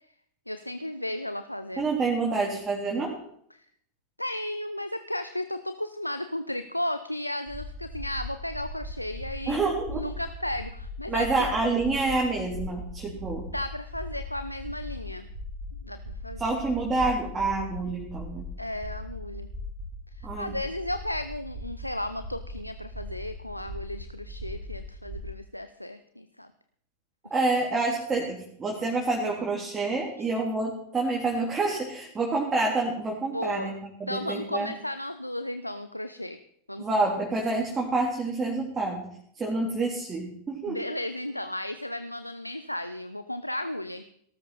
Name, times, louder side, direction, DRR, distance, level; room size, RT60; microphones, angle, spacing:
voice 1, 0.5-1.9 3.5-3.6 4.2-9.6 9.9-11.6 13.5-15.3 15.8-16.4 18.6-19.5 20.2-26.5 33.3-33.7 34.1-36.4 36.7-37.0 40.7-44.0, left 1 dB, 85° left, 11 dB, 0.7 m, -34 dB
voice 2, 1.8-3.2 9.5-10.1 11.1-13.5 16.4-18.5 20.2-20.5 27.3-33.7 34.0-34.7 36.8-39.1 39.4-40.8, right 3 dB, 20° right, -2 dB, 3.5 m, -28 dB
sound 1, 7.5-25.3, left 1 dB, 35° right, 3.5 m, -39 dB
18.0 x 13.5 x 4.2 m, 0.68 s
figure-of-eight pair, 90°, 0 cm